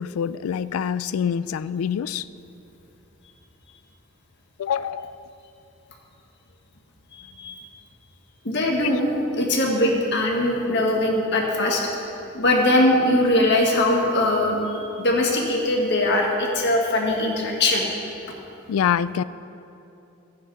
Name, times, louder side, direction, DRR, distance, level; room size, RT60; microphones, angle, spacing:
voice 1, 0.0-2.2 4.6-5.3 18.7-19.2, left 8 dB, 85° left, 17 dB, 0.3 m, -25 dB
voice 2, 7.1-7.7 8.5-11.9 12.3-17.9, left 1 dB, 55° left, 0 dB, 1.7 m, -21 dB
13.5 x 9.5 x 4.7 m, 2.9 s
head